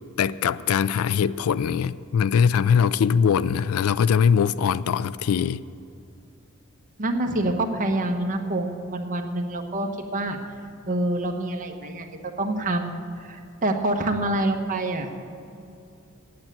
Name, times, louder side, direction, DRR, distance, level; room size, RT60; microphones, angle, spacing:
voice 1, 0.2-5.6, left 7 dB, 75° left, 0.3 m, -21 dB
voice 2, 7.0-10.4 10.9-12.1 12.4-15.1, right 1 dB, 40° right, 1.1 m, -26 dB
8.9 x 8.8 x 9.0 m
head